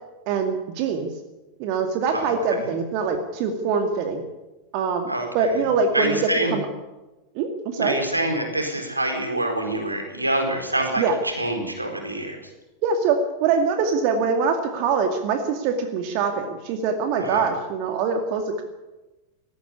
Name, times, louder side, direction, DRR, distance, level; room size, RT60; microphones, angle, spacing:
voice 1, 0.3-1.1 1.6-4.2 4.7-6.2 6.5-6.7 7.3-8.0 11.0-11.1 12.8-18.6, right 5 dB, 45° right, 5 dB, 2.2 m, -24 dB
voice 2, 5.1-5.6 5.9-6.6 7.8-12.4 17.2-17.5, right 1 dB, 85° right, 4 dB, 4.3 m, -26 dB
18.5 x 15.0 x 9.8 m, 1.1 s
figure-of-eight pair, 85°, 0 cm